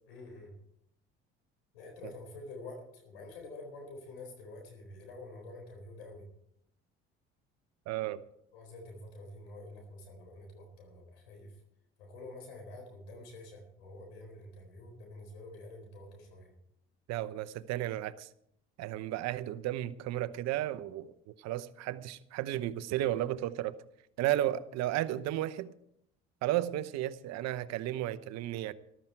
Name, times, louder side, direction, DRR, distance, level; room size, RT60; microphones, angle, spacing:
voice 1, 0.1-0.5 1.7-6.3 8.5-11.6 12.0-16.5, left 2 dB, 90° left, 3 dB, 4.2 m, -48 dB
voice 2, 7.9-8.2 17.1-18.3 18.8-23.7 24.2-25.7 26.4-28.7, right 14 dB, 65° right, 15 dB, 0.9 m, -33 dB
14.0 x 12.5 x 4.6 m, 0.74 s
hypercardioid pair, 70°, 29 cm